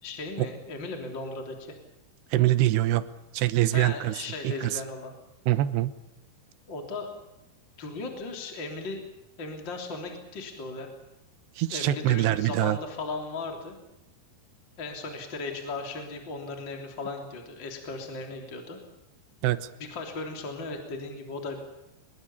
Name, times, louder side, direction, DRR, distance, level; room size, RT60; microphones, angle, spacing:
voice 1, 0.0-1.8 3.7-5.1 6.7-7.1 7.8-9.0 9.4-10.9 11.7-13.8 14.8-18.8 19.8-21.7, left 3 dB, 30° left, 3 dB, 3.6 m, -37 dB
voice 2, 2.3-3.1 3.3-4.2 4.4-4.8 5.5-5.9 11.6-12.8 19.4-19.7, right 14 dB, 90° right, 13 dB, 3.1 m, -24 dB
24.0 x 21.5 x 7.1 m, 0.89 s
omnidirectional pair, 4.7 m